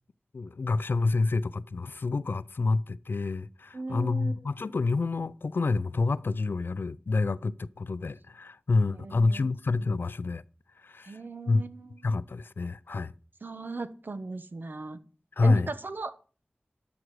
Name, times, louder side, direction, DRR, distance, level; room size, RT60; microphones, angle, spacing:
voice 1, 0.3-10.4 10.8-11.2 11.5-11.6 12.0-13.1 15.4-15.7, left 3 dB, 75° left, 0.4 m, -28 dB
voice 2, 3.7-4.4 8.8-9.5 11.0-12.1 13.4-15.0 15.4-16.1, right 3 dB, 65° right, 0.9 m, -37 dB
12.5 x 6.2 x 4.8 m
wide cardioid pair, 50°, 4 cm